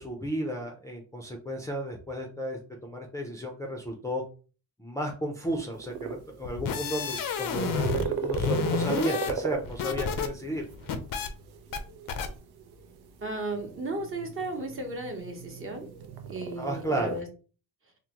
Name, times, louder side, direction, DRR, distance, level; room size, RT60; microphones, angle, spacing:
voice 1, 0.0-4.2 4.8-10.6 16.6-17.2, equal, 10° left, -1 dB, 0.5 m, -33 dB
sound 1, 5.7-17.2, right 6 dB, 80° right, 0.6 m, -38 dB
sound 2, 6.4-8.1 8.3-10.3 10.6-11.3 11.7-11.8 12.1-12.3, left 6 dB, 60° left, 0.6 m, -30 dB
voice 2, 13.2-15.9 16.3-17.3, right 2 dB, 35° right, 2 dB, 0.9 m, -35 dB
3.6 x 2.1 x 2.9 m, 0.36 s
cardioid pair, 120°, 38 cm